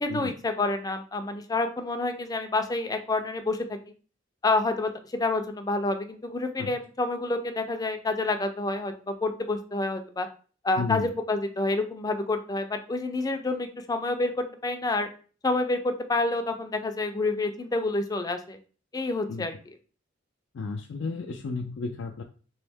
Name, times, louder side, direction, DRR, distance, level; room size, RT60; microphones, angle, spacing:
voice 1, 0.0-3.8 4.4-10.3 10.6-15.1 15.4-18.6 18.9-19.8, left 2 dB, 20° left, 7 dB, 0.4 m, -28 dB
voice 2, 10.8-11.1 19.3-19.5 20.5-22.2, left 4 dB, 80° left, 2 dB, 0.4 m, -33 dB
3.5 x 3.1 x 3.4 m, 0.39 s
head